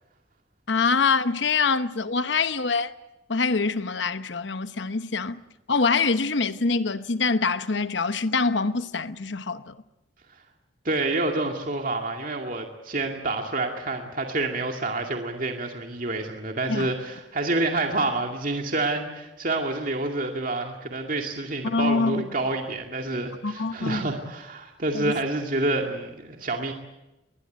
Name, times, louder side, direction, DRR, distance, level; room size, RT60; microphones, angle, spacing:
voice 1, 0.7-2.9 3.3-5.4 5.7-9.7 16.7-16.9 21.6-22.2 23.4-24.1 24.9-25.1, left 4 dB, 70° left, 1.0 m, -25 dB
voice 2, 10.8-26.7, right 2 dB, 45° right, 2.2 m, -28 dB
21.0 x 21.0 x 9.2 m
head